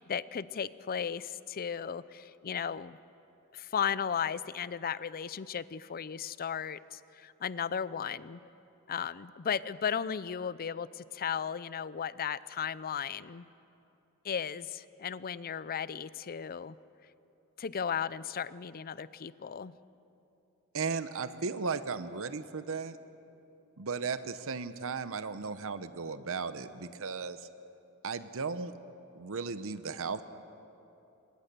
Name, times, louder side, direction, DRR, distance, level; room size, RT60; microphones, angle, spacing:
voice 1, 0.0-3.0 3.5-8.4 8.9-13.4 14.2-16.8 17.6-19.7, left 7 dB, 45° left, 17 dB, 0.5 m, -35 dB
voice 2, 20.7-23.0 23.8-27.4 28.0-28.7 29.2-30.2, right 5 dB, 65° right, 12 dB, 0.8 m, -35 dB
26.5 x 20.5 x 6.8 m, 2.9 s
head